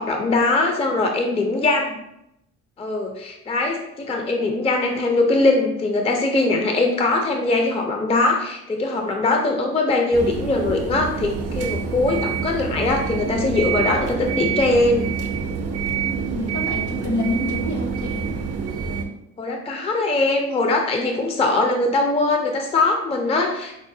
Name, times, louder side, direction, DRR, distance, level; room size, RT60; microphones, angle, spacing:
voice 1, 0.0-2.0 2.8-15.1 19.4-23.8, left 2 dB, 20° left, 3 dB, 0.4 m, -21 dB
sound 1, 10.1-19.0, right 6 dB, 55° right, 0.5 m, -27 dB
voice 2, 16.0-18.2 21.0-21.1, left 1 dB, 70° left, 1 dB, 1.0 m, -27 dB
4.7 x 2.0 x 2.6 m, 0.83 s
cardioid pair, 90°, 30 cm